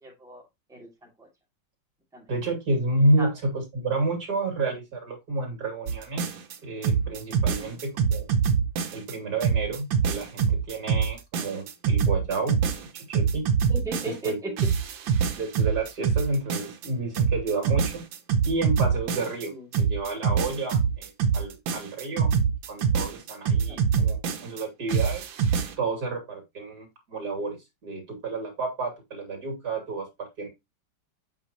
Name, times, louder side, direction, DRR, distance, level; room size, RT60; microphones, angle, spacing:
voice 1, 0.0-0.4 0.7-1.3 2.1-2.3 3.2-3.3 7.6-7.8 13.7-14.5 19.5-19.7 23.7-23.8, equal, ahead, -1 dB, 2.1 m, -38 dB
voice 2, 2.3-6.3 6.6-8.3 8.9-12.6 12.9-13.5 14.0-14.4 15.4-18.0 18.4-19.5 19.8-22.3 22.7-25.2 25.8-27.6 27.8-30.5, right 2 dB, 55° right, 4 dB, 2.9 m, -30 dB
sound 1, 5.9-6.6 6.8-9.1 9.4-14.3 14.6-16.9 17.2-19.5 19.7-24.6 24.9-25.7, right 6 dB, 85° right, 1.7 m, -24 dB
7.9 x 5.3 x 2.9 m, 0.21 s
omnidirectional pair, 2.1 m